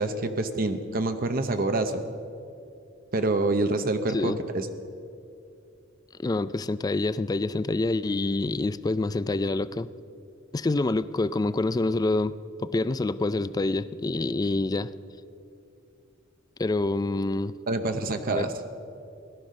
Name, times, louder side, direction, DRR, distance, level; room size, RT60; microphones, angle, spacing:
voice 1, 0.0-2.1 3.1-4.7 17.7-18.5, right 2 dB, 45° right, 8 dB, 0.7 m, -26 dB
voice 2, 6.2-9.9 10.5-14.9 16.6-17.5 18.3-18.4, left 2 dB, 20° left, 15 dB, 0.3 m, -27 dB
17.0 x 12.0 x 6.3 m, 2.6 s
head